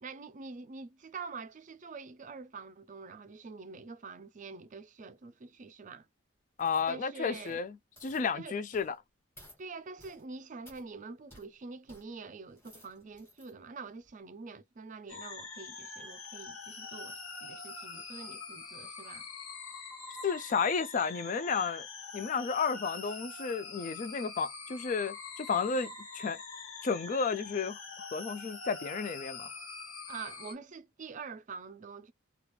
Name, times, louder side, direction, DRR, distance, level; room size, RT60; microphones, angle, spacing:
voice 1, 0.0-6.1 6.9-7.6 8.3-8.6 9.6-19.3 30.1-32.1, right 4 dB, 35° right, 0.4 m, -46 dB
voice 2, 6.6-7.8 8.0-9.0 20.2-21.9 22.1-26.4 26.8-27.8 28.1-29.5, left 5 dB, 40° left, 0.3 m, -32 dB
sound 1, 6.6-6.9 7.3-7.6 8.0-8.3 8.7-9.0 9.4-9.6 10.0-10.2 10.7-10.8 11.3-11.5 11.9-12.0 12.5-13.5 14.0-14.1, equal, 10° left, 1.5 m, -57 dB
sound 2, 15.1-30.5, left 4 dB, 85° left, 1.1 m, -45 dB
3.3 x 2.3 x 3.0 m
head